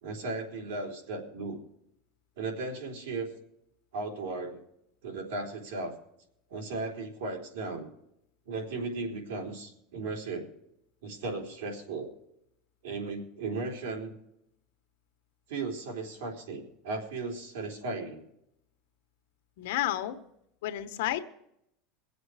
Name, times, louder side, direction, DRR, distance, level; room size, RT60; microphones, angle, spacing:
voice 1, 0.0-1.6 2.4-3.3 3.9-4.6 5.0-5.9 6.5-7.9 8.5-10.5 11.0-12.1 12.8-14.1 15.5-18.2, right 3 dB, 85° right, 1 dB, 3.7 m, -36 dB
voice 2, 19.6-20.2 20.6-21.2, left 13 dB, 75° left, 8 dB, 1.1 m, -31 dB
23.0 x 8.0 x 4.9 m, 0.78 s
supercardioid pair, 155°, 0 cm